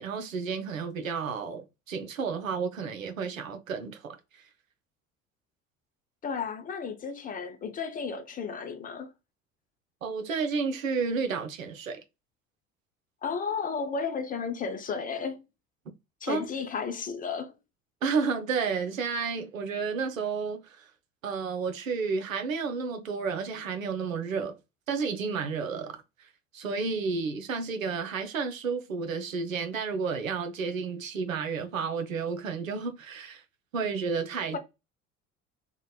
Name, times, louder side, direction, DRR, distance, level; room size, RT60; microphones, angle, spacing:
voice 1, 0.0-4.4 10.0-12.0 16.3-16.5 18.0-20.9 21.2-24.6 24.9-33.4 33.7-34.6, right 5 dB, 85° right, 0.5 m, -31 dB
voice 2, 6.2-9.1 13.2-15.4 16.2-17.6 34.5-34.6, left 5 dB, 20° left, 0.4 m, -33 dB
2.8 x 2.1 x 2.2 m
figure-of-eight pair, 60°, 39 cm